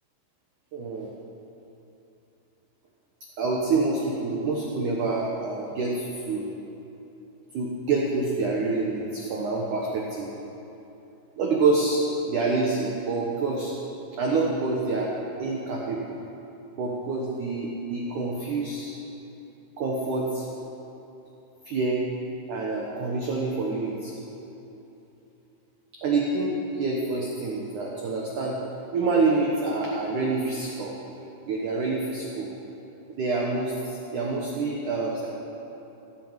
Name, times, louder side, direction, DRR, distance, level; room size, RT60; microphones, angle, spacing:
voice 1, 0.7-1.1 3.4-6.5 7.5-10.3 11.4-13.7 14.2-15.1 15.4-16.2 16.8-18.9 19.8-20.5 21.7-22.0 22.5-24.1 26.0-28.6 28.9-30.9 31.5-32.5 33.1-35.3, right 3 dB, 80° right, -2 dB, 1.8 m, -27 dB
17.0 x 8.9 x 8.1 m, 2.9 s
omnidirectional pair, 5.7 m